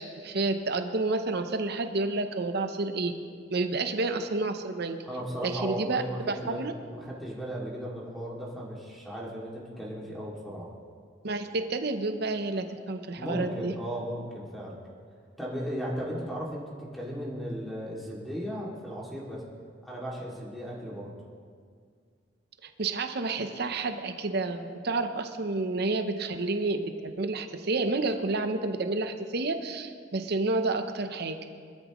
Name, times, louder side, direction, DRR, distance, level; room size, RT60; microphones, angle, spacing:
voice 1, 0.0-3.1 3.5-5.0 5.4-6.7 11.2-13.7 22.6-31.4, right 3 dB, 60° right, 7 dB, 0.8 m, -30 dB
voice 2, 5.1-6.7 6.9-10.7 13.2-14.8 15.4-19.4 19.9-21.1, equal, ahead, -7 dB, 2.4 m, -36 dB
22.5 x 13.5 x 3.1 m, 2.1 s
head